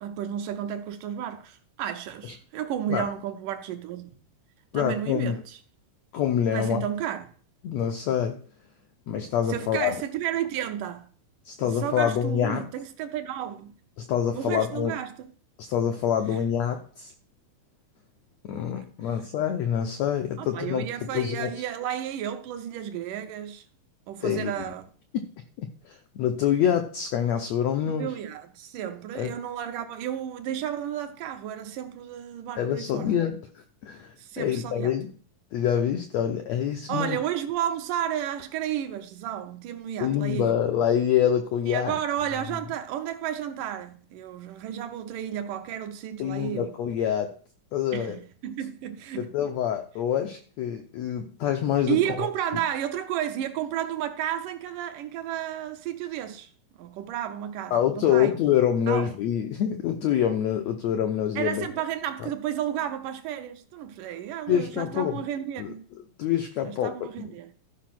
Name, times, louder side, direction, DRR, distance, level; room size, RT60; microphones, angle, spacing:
voice 1, 0.0-4.2 4.7-5.6 6.5-7.3 9.5-11.1 11.6-13.7 14.3-15.3 19.0-19.2 20.4-23.6 24.1-24.9 27.9-33.1 34.2-34.9 36.9-40.6 41.7-46.7 47.9-49.3 51.9-56.5 56.8-58.3 58.9-59.1 61.4-65.8 66.6-67.5, right 10 dB, 75° right, 2.2 m, -32 dB
voice 2, 4.7-5.4 6.1-6.8 7.6-8.4 9.1-10.0 11.4-12.7 14.0-14.9 15.6-17.1 18.4-20.8 21.1-21.5 24.2-24.5 25.1-25.3 25.6-28.1 29.1-29.3 32.6-35.1 35.5-37.2 40.0-42.0 46.2-47.3 47.7-48.2 49.2-52.0 57.7-61.7 62.2-62.3 64.5-65.2 65.6-65.7 66.2-66.9 67.2-67.3, left 9 dB, 80° left, 1.5 m, -26 dB
13.5 x 5.2 x 5.9 m
omnidirectional pair, 4.1 m